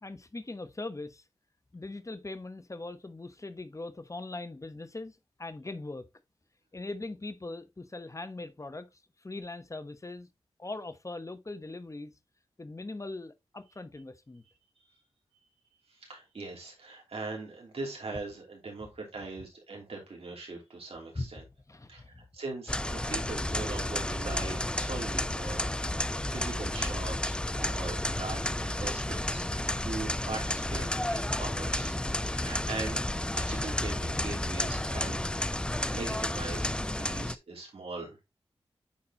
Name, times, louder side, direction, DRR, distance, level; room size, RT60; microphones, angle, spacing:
voice 1, 0.0-1.2 1.7-6.1 6.7-10.3 10.6-12.1 12.6-14.4 21.1-21.3 21.7-22.3, left 2 dB, 30° left, 1.1 m, -41 dB
voice 2, 15.9-21.4 21.9-32.0 32.3-38.2, right 3 dB, 70° right, 3.0 m, -41 dB
sound 1, 22.7-37.4, left 1 dB, 10° left, 0.4 m, -32 dB
8.6 x 4.2 x 2.9 m
cardioid pair, 50°, 10 cm